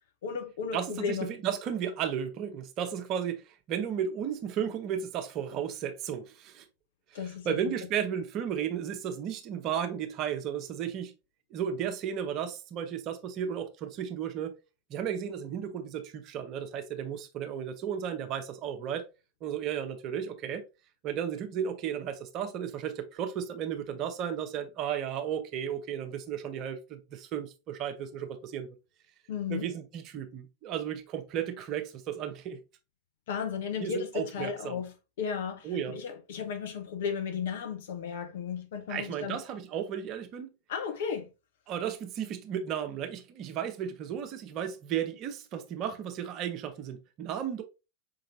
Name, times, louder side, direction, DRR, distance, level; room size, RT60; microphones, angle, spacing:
voice 1, 0.2-1.3 7.1-7.5 29.3-29.7 33.3-34.9 35.2-39.4 40.7-41.3, left 7 dB, 55° left, 0.8 m, -34 dB
voice 2, 0.7-6.6 7.2-11.1 11.5-14.5 14.9-19.0 19.4-20.6 21.0-28.7 29.5-32.6 33.8-34.8 35.6-36.0 38.9-40.5 41.7-47.6, right 8 dB, 35° right, 0.7 m, -34 dB
5.2 x 2.9 x 2.7 m
figure-of-eight pair, 90°, 0 cm